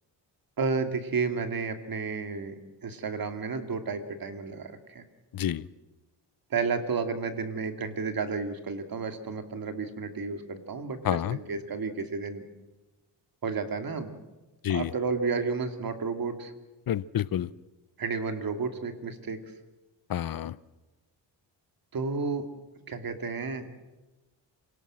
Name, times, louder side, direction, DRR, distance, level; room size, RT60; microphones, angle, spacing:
voice 1, 0.6-5.0 6.5-12.4 13.4-14.1 14.7-16.5 18.0-19.4 21.9-22.5 22.9-23.7, right 4 dB, 50° right, 8 dB, 2.6 m, -32 dB
voice 2, 11.0-11.4 14.6-14.9 16.9-17.5 20.1-20.5, left 11 dB, 50° left, 20 dB, 0.8 m, -28 dB
27.5 x 18.5 x 7.6 m, 1.1 s
cardioid pair, 100°, 45 cm